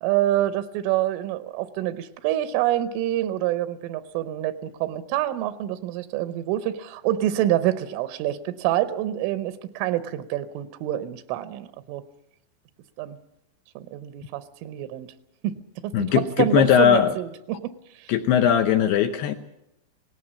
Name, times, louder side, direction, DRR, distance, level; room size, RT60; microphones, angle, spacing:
voice 1, 0.0-12.0 13.0-13.2 13.8-15.1 15.4-17.7, right 13 dB, 85° right, 13 dB, 3.4 m, -27 dB
voice 2, 15.9-17.1 18.1-19.4, left 9 dB, 75° left, 8 dB, 2.4 m, -19 dB
18.5 x 17.5 x 8.5 m, 0.83 s
omnidirectional pair, 5.5 m